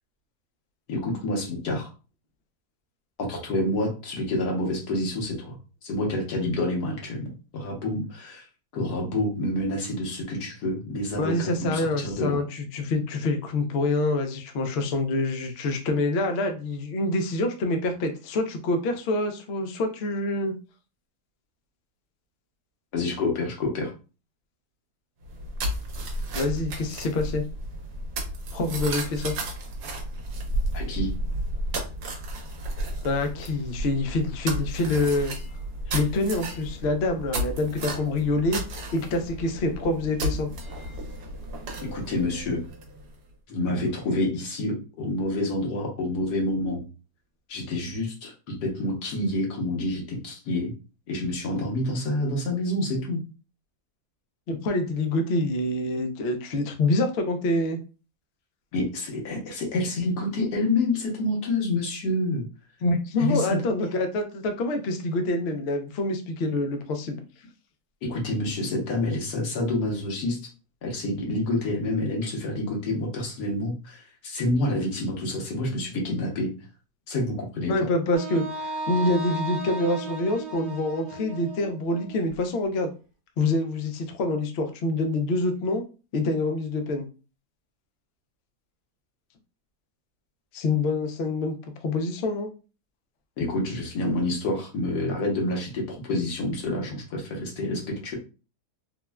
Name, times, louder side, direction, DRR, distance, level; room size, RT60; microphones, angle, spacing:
voice 1, 0.9-1.9 3.2-5.5 5.8-8.5 8.7-12.4 22.9-23.9 30.7-31.1 35.9-36.0 41.8-42.6 43.5-46.8 47.5-50.7 51.1-53.2 58.7-62.4 63.2-63.6 68.0-70.4 70.8-76.5 77.1-77.9 93.4-98.1, left 1 dB, 90° left, 0 dB, 1.5 m, -28 dB
voice 2, 11.2-20.6 26.3-27.4 28.5-29.3 33.0-35.3 35.9-38.6 38.9-40.5 54.5-57.8 62.8-67.2 77.7-82.9 83.4-85.8 86.1-87.1 90.5-91.5 91.8-92.5, left 2 dB, 70° left, 5 dB, 0.6 m, -26 dB
sound 1, 25.2-43.2, right 1 dB, 75° right, 1.2 m, -33 dB
Wind instrument woodwind instrument, 78.1-82.2, right 2 dB, 50° right, 1.1 m, -35 dB
3.5 x 2.1 x 2.2 m, 0.33 s
omnidirectional pair, 1.7 m